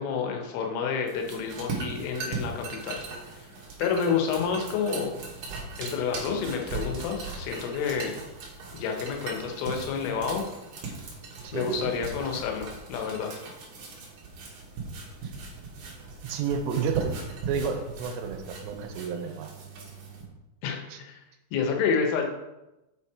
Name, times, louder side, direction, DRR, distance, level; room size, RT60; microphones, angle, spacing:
voice 1, 0.0-3.0 3.3-3.5 3.8-5.1 5.8-8.2 8.7-10.5 11.5-13.3 20.6-21.2 21.5-22.3, left 6 dB, 80° left, 2 dB, 3.4 m, -29 dB
sound 1, 1.1-20.2, right 4 dB, 60° right, 2.5 m, -39 dB
voice 2, 11.4-12.0 15.2-15.3 16.2-17.2 17.5-19.5 20.9-21.0, right 6 dB, 85° right, 6 dB, 3.1 m, -31 dB
7.4 x 5.7 x 4.7 m, 0.99 s
omnidirectional pair, 5.9 m